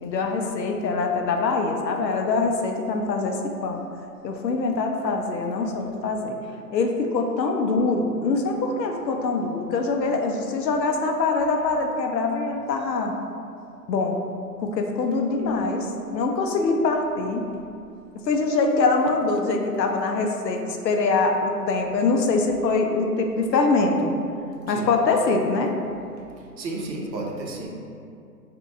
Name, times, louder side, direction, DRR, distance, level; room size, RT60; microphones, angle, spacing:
voice 1, 0.0-3.8 4.2-6.4 6.7-13.1 13.9-14.2 14.6-17.5 18.2-24.1 24.7-25.7, left 3 dB, 85° left, 3 dB, 0.6 m, -24 dB
voice 2, 26.6-27.7, right 2 dB, 90° right, -1 dB, 0.8 m, -32 dB
2.8 x 2.5 x 3.6 m, 2.5 s
hypercardioid pair, 170°, 49 cm